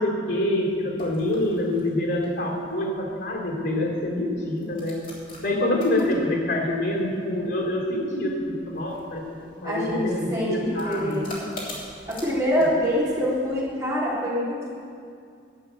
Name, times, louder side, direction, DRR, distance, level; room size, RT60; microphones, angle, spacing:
voice 1, 0.0-5.0 5.4-9.2 9.6-11.2 12.6-12.7, left 1 dB, 80° left, -2 dB, 3.1 m, -26 dB
sound 1, 0.6-13.7, left 1 dB, 45° left, 3.3 m, -45 dB
voice 2, 9.6-11.5 12.1-14.7, equal, 20° right, -8 dB, 3.3 m, -25 dB
11.5 x 8.2 x 8.1 m, 2.4 s
head